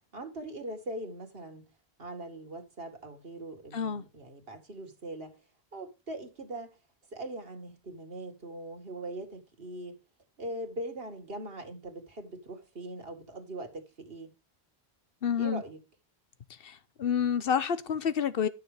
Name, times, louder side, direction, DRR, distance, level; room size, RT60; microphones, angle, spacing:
voice 1, 0.1-1.7 2.0-5.4 5.7-6.8 7.1-10.0 10.4-14.3 15.4-15.8, right 1 dB, 60° right, 2.3 m, -41 dB
voice 2, 3.7-4.0 15.2-15.6 16.6-18.5, left 7 dB, 60° left, 1.1 m, -29 dB
12.0 x 6.9 x 5.0 m
omnidirectional pair, 1.1 m